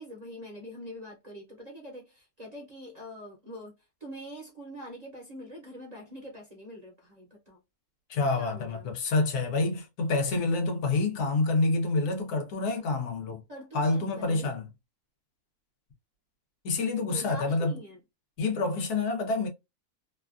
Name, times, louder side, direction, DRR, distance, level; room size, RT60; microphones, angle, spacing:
voice 1, 0.0-3.7 4.0-7.6 8.4-8.9 13.5-14.5 17.1-18.0, equal, 35° right, 0.6 m, -44 dB
voice 2, 8.1-13.4 13.7-14.7 16.6-17.7 18.4-19.5, left 3 dB, 85° left, 1.4 m, -27 dB
3.1 x 2.3 x 2.4 m
omnidirectional pair, 1.6 m